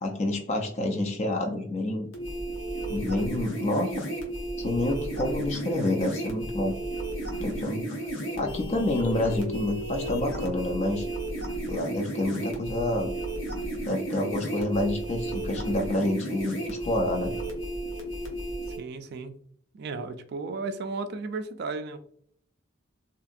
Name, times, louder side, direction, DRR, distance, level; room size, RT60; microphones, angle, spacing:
voice 1, 0.0-2.1 2.9-4.0 4.6-6.7 7.4-7.9 8.4-11.1 11.7-13.1 13.9-17.4, left 1 dB, 35° left, 3 dB, 0.4 m, -28 dB
sound 1, 2.1-18.8, right 1 dB, 80° left, 0.8 m, -33 dB
voice 2, 18.8-19.4 19.7-22.0, right 3 dB, 55° right, 9 dB, 0.3 m, -34 dB
2.9 x 2.5 x 2.4 m, 0.63 s
head